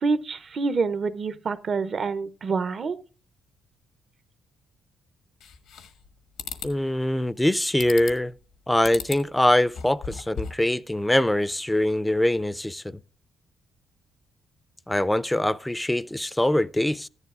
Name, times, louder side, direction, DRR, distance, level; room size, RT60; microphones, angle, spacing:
voice 1, 0.0-3.0, right 4 dB, 45° right, 0.6 m, -27 dB
sound 1, 5.4-6.1 6.4-6.7 7.8-8.3 8.8-9.3 9.6-10.7, left 6 dB, 90° left, 1.3 m, -36 dB
voice 2, 6.6-8.3 8.7-13.0 14.9-17.1, left 1 dB, 5° left, 0.4 m, -23 dB
14.0 x 11.0 x 2.4 m
cardioid pair, 90°, 0 cm